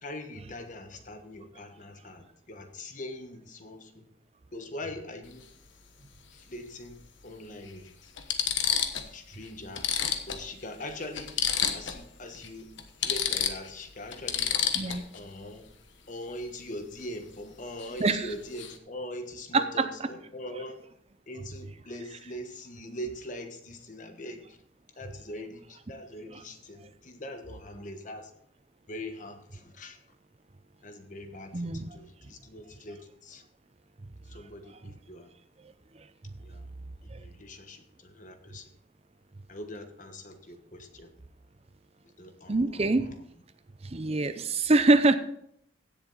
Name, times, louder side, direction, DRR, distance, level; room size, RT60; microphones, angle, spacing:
voice 1, 0.0-4.1 4.5-5.4 6.3-8.1 9.0-9.9 10.3-11.3 11.7-12.7 13.0-14.5 14.8-15.7 16.1-20.8 21.3-24.6 25.0-28.3 28.9-30.0 30.8-33.4 34.2-35.3 36.4-36.7 37.0-38.7 39.5-41.1 42.0-43.2, left 1 dB, 40° left, 7 dB, 1.3 m, -42 dB
sound 1, 5.2-5.4 6.9-7.0 7.7-7.8 8.2-9.1 9.4-9.5 9.8-12.1 12.3-12.5 12.8-15.2 17.8-18.0 18.3-18.8, left 8 dB, 75° left, 1.2 m, -30 dB
voice 2, 19.5-19.9 31.5-31.9 37.1-37.2 42.5-43.1 43.8-45.2, right 2 dB, 30° right, 11 dB, 0.6 m, -24 dB
16.0 x 7.2 x 4.0 m, 0.70 s
head